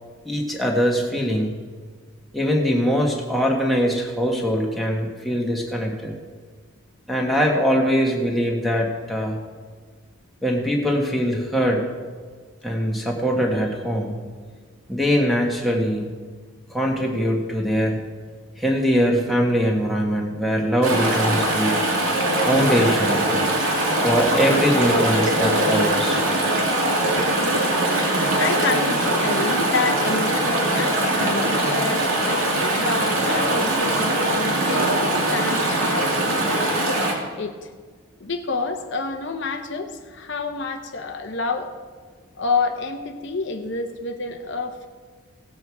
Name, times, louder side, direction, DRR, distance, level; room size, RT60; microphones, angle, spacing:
voice 1, 0.2-1.5 2.3-6.1 7.1-9.4 10.4-11.8 12.6-14.2 14.9-16.1 16.7-18.0 18.6-21.8 22.5-23.3 24.0-26.2, equal, ahead, -2 dB, 1.5 m, -22 dB
Chatter / Stream, 20.8-37.1, right 1 dB, 65° right, 2.3 m, -21 dB
voice 2, 28.4-36.7 37.4-37.6 38.2-41.7 42.4-44.9, left 4 dB, 55° left, 5 dB, 0.8 m, -28 dB
17.0 x 7.8 x 4.8 m, 1.5 s
head